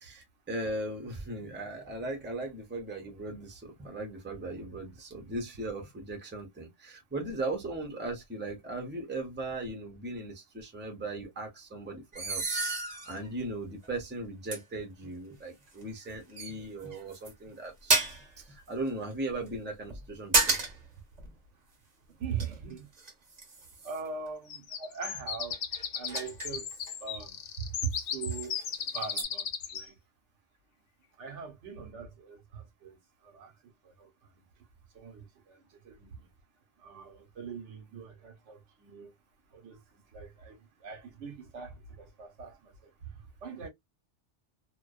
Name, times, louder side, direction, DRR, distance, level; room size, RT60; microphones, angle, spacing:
voice 1, 0.0-12.4 12.8-18.1 18.4-20.6 24.8-24.9, right 2 dB, 10° right, 0.6 m, -38 dB
sound 1, 12.1-13.3 13.8-13.9 14.5-14.6 15.8-16.0 16.4-17.3 17.9-18.3 19.9-20.9 21.2-21.3 22.1-24.1 25.5-26.9 27.9-28.0 28.3-28.6 29.1-29.2, right 3 dB, 40° right, 0.8 m, -31 dB
voice 2, 22.2-22.9 23.8-25.6 25.9-28.6 28.9-29.5 29.7-29.9 31.2-33.0 33.2-33.5 33.8-34.1 34.3-34.4 34.9-36.3 36.8-39.1 39.5-39.8 40.1-40.6 40.8-42.7 43.1-43.7, right 6 dB, 80° right, 1.1 m, -41 dB
sound 2, 24.5-29.9, left 7 dB, 60° left, 0.6 m, -36 dB
2.5 x 2.2 x 2.3 m
omnidirectional pair, 1.2 m